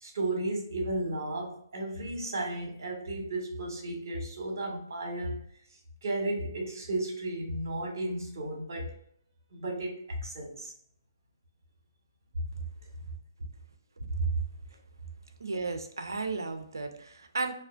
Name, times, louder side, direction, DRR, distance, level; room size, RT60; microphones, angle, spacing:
voice 1, 0.0-5.4 6.0-8.9 9.5-10.7, right 2 dB, 55° right, 1 dB, 1.0 m, -34 dB
voice 2, 15.4-17.5, right 3 dB, 70° right, 7 dB, 0.5 m, -33 dB
3.2 x 2.5 x 2.4 m, 0.67 s
figure-of-eight pair, 135°, 2 cm